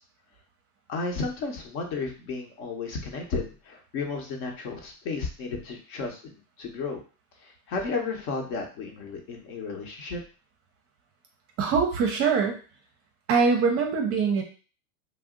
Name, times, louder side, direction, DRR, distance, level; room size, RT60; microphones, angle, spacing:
voice 1, 0.9-7.0 7.7-10.2, left 4 dB, 55° left, 2 dB, 1.0 m, -33 dB
voice 2, 11.6-12.6 13.3-14.4, right 5 dB, 30° right, 3 dB, 0.6 m, -23 dB
2.6 x 2.1 x 3.7 m, 0.37 s
hypercardioid pair, 110°, 44 cm